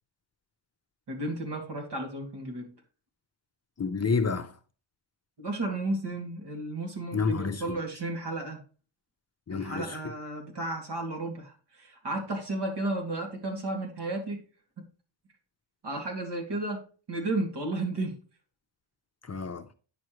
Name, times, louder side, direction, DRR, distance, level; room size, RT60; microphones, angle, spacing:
voice 1, 1.1-2.7 5.4-8.6 9.5-14.4 15.8-18.2, right 2 dB, 60° right, 2.5 m, -33 dB
voice 2, 3.8-4.5 7.1-7.8 9.5-10.0 19.2-19.7, left 5 dB, 35° left, 0.6 m, -29 dB
9.8 x 6.1 x 3.1 m
wide cardioid pair, 165°, 46 cm